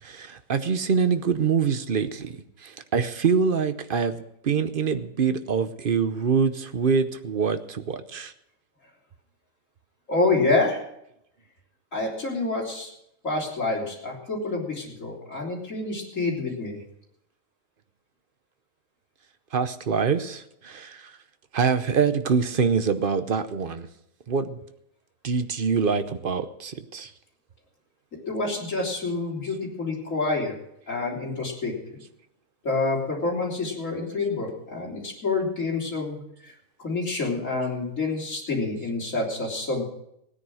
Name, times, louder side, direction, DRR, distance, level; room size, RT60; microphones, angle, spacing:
voice 1, 0.0-2.4 2.6-8.3 19.5-21.1 21.5-23.9 24.3-24.6 25.2-27.1, right 6 dB, 45° right, 10 dB, 0.9 m, -25 dB
voice 2, 10.1-10.8 11.9-12.9 13.2-16.8 28.3-30.6 30.9-32.0 32.6-36.5 36.8-39.9, left 3 dB, 60° left, -2 dB, 3.9 m, -27 dB
17.0 x 9.8 x 6.3 m, 0.78 s
omnidirectional pair, 1.5 m